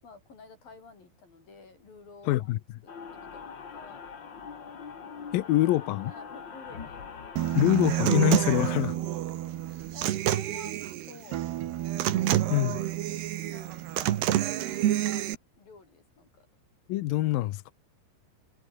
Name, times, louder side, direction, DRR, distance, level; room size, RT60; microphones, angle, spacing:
voice 1, 0.0-4.0 6.1-7.0 9.6-11.5 13.5-15.3 15.6-16.5, left 4 dB, 55° left, 9.2 m, -51 dB
voice 2, 2.3-2.6 5.3-6.1 7.5-9.0 12.5-12.8 16.9-17.7, left 16 dB, 70° left, 2.3 m, -25 dB
sound 1, 2.9-8.8, left 6 dB, 35° left, 2.0 m, -43 dB
Human voice / Acoustic guitar, 7.4-15.3, right 13 dB, 75° right, 3.5 m, -28 dB
omnidirectional pair, 4.9 m